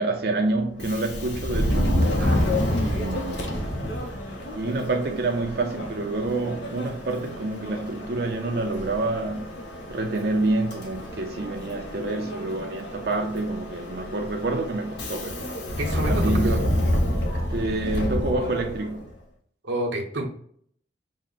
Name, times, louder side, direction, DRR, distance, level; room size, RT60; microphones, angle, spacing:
voice 1, 0.0-2.0 2.8-3.8 4.5-9.5 9.9-15.5 16.1-16.8 17.3-19.1, right 2 dB, 60° right, 0.5 m, -28 dB
Subway metro underground, 0.7-19.1, left 1 dB, 75° left, 0.9 m, -28 dB
voice 2, 15.8-16.5 19.6-20.3, right 1 dB, 85° right, 0.9 m, -29 dB
5.4 x 2.1 x 3.9 m
head